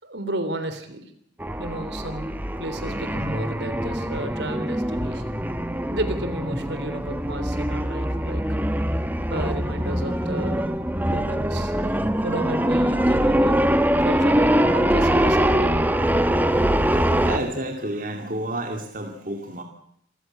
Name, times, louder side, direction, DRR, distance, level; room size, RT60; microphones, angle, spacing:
voice 1, 0.0-1.0 1.6-5.4 5.9-8.4 9.3-10.8 11.0-11.7 12.2-13.6 14.0-15.8, right 1 dB, 70° right, 10 dB, 3.5 m, -32 dB
sound 1, 1.4-17.4, equal, 10° right, 1.3 m, -23 dB
voice 2, 16.5-19.6, right 1 dB, 45° right, 4 dB, 2.5 m, -31 dB
27.0 x 15.5 x 8.7 m, 0.69 s
head